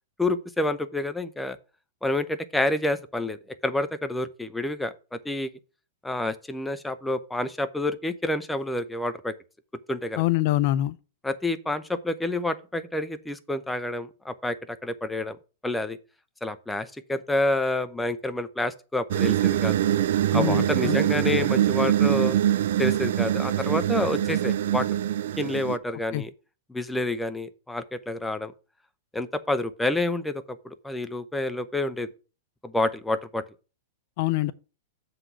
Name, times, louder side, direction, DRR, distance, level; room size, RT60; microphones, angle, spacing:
voice 1, 0.2-1.6 2.0-5.5 6.0-9.3 9.9-10.2 11.2-15.4 15.6-16.0 16.4-19.8 20.3-22.4 22.8-24.9 25.4-26.3 26.7-28.5 29.1-32.1 32.6-33.4, left 2 dB, 5° left, 0.7 m, -28 dB
voice 2, 10.2-11.0 20.3-21.0 26.1-26.2 34.2-34.5, left 16 dB, 55° left, 0.4 m, -24 dB
sound 1, 19.1-25.8, right 12 dB, 70° right, 0.4 m, -23 dB
7.4 x 4.0 x 6.8 m
hypercardioid pair, 115°, 0 cm